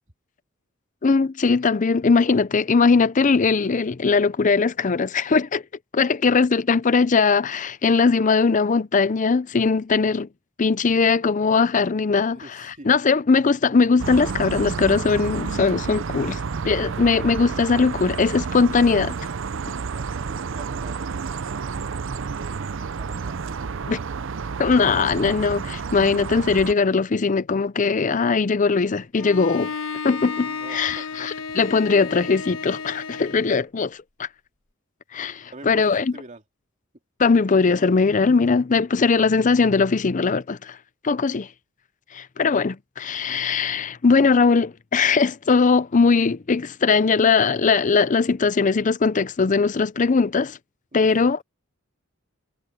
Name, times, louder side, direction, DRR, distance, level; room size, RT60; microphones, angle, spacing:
voice 1, 1.0-5.6 5.9-10.3 10.6-12.4 12.8-16.4 16.6-19.2 23.9-24.0 24.6-29.7 30.0-34.3 35.1-36.1 37.2-40.8 41.0-41.5 42.1-50.6 50.9-51.4, left 4 dB, 40° left, 0.5 m, -20 dB
voice 2, 12.3-12.9 19.9-22.1 22.4-23.4 30.4-31.3 35.5-36.4 50.9-51.4, right 2 dB, 35° right, 2.9 m, -45 dB
sound 1, 14.0-26.7, right 5 dB, 65° right, 0.6 m, -30 dB
Bowed string instrument, 29.1-33.6, left 5 dB, 70° left, 1.8 m, -33 dB
head